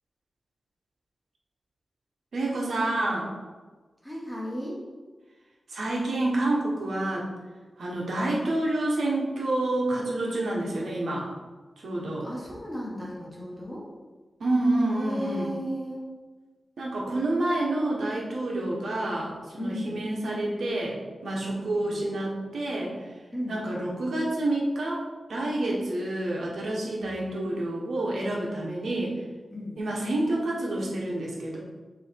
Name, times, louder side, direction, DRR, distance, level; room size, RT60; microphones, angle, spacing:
voice 1, 2.3-3.3 5.7-7.3 7.8-11.3 11.8-12.3 14.4-15.5 16.8-21.0 21.2-22.9 23.5-25.0 25.3-29.1 29.8-31.6, right 1 dB, 80° right, -3 dB, 1.4 m, -28 dB
voice 2, 4.0-4.8 12.2-13.9 14.9-16.0 19.6-20.0 21.6-22.0 23.3-23.6 29.5-29.8, equal, 5° left, -5 dB, 1.4 m, -35 dB
6.8 x 3.2 x 4.6 m, 1.3 s
wide cardioid pair, 105°, 0 cm